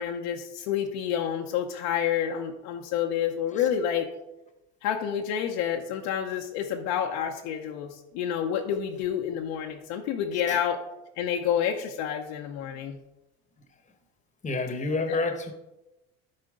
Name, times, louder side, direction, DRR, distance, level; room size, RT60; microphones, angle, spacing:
voice 1, 0.0-4.1 4.8-10.8 11.2-13.0 15.1-15.2, left 9 dB, 75° left, 2 dB, 0.8 m, -29 dB
voice 2, 14.4-15.5, left 3 dB, 20° left, 7 dB, 1.0 m, -28 dB
12.0 x 4.4 x 3.7 m, 0.96 s
supercardioid pair, 115°, 36 cm